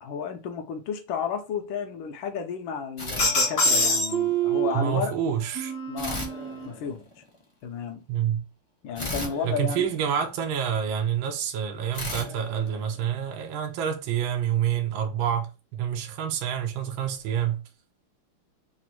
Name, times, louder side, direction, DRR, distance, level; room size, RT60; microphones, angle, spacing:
voice 1, 0.0-5.1 5.9-6.2 6.7-7.0 7.6-8.0 8.8-9.9, left 6 dB, 75° left, 1.4 m, -32 dB
sound 1, 3.0-4.1 6.0-7.3 8.9-10.6 11.9-13.5, left 2 dB, 55° left, 0.3 m, -37 dB
sound 2, 3.2-4.9 5.6-6.7, right 1 dB, 40° left, 0.9 m, -25 dB
voice 2, 4.7-5.7 8.1-8.4 9.4-17.6, right 9 dB, 75° right, 1.5 m, -27 dB
4.0 x 2.5 x 4.3 m
omnidirectional pair, 2.3 m